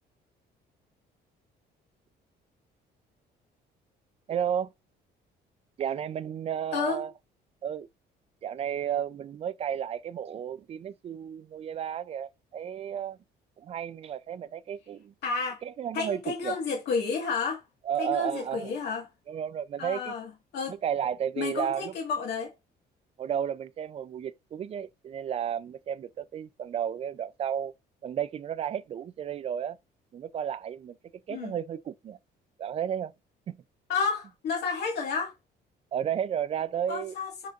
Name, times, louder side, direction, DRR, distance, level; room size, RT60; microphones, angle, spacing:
voice 1, 4.3-4.7 5.8-7.1 7.6-7.9 8.4-13.2 13.6-15.1 15.6-16.6 17.9-18.7 19.3-20.1 20.7-21.9 23.2-27.7 28.0-29.8 30.1-31.0 31.3-32.2 32.6-33.1 33.5-33.6 35.9-37.1, right 9 dB, 35° right, 0.4 m, -32 dB
voice 2, 6.7-7.0 15.2-15.6 15.9-17.6 18.0-19.1 19.8-20.8 21.4-22.5 31.3-31.6 33.9-35.3 36.9-37.5, left 5 dB, 65° left, 1.8 m, -31 dB
10.5 x 3.9 x 2.4 m
cardioid pair, 150°, 18 cm